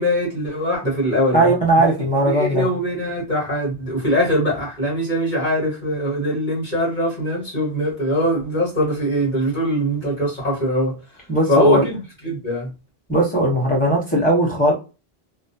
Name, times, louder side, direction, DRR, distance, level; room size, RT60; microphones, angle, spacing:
voice 1, 0.0-1.5 1.8-1.9 2.2-11.0 11.5-12.7, equal, 50° left, 1.6 m, -22 dB
voice 2, 1.3-2.7 11.3-11.8 13.1-14.7, right 1 dB, 10° left, 1.1 m, -18 dB
3.1 x 2.1 x 2.5 m
omnidirectional pair, 1.0 m